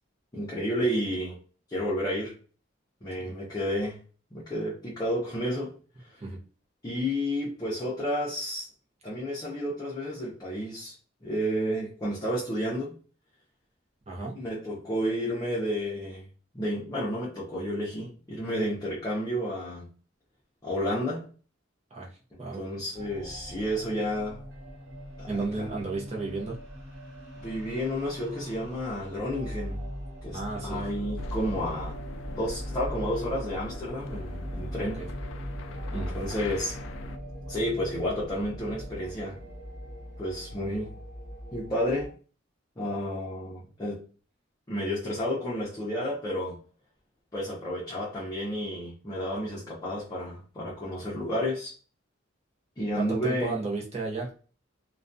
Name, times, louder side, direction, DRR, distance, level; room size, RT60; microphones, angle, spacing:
voice 1, 0.3-1.4 1.7-2.3 3.0-4.0 4.3-5.7 6.0-6.2 6.8-8.7 9.0-10.9 11.2-12.9 14.3-16.2 16.5-19.9 20.6-21.3 22.6-24.4 25.2-25.7 27.4-29.8 30.2-32.0 32.3-35.0 35.9-36.7 37.5-39.4 40.2-40.9 41.5-42.1 42.8-44.0 44.7-46.6 47.3-51.7 52.8-53.5, equal, 20° left, -7 dB, 0.6 m, -31 dB
voice 2, 14.1-14.4 21.9-22.1 22.4-22.6 25.3-26.6 30.3-30.9 34.8-35.1 35.9-36.1 53.0-54.4, right 3 dB, 35° right, -1 dB, 0.6 m, -34 dB
sound 1, 22.9-42.1, equal, 85° right, 1.0 m, -40 dB
sound 2, 31.2-37.2, left 2 dB, 80° left, 0.3 m, -42 dB
2.3 x 2.2 x 2.5 m, 0.39 s
head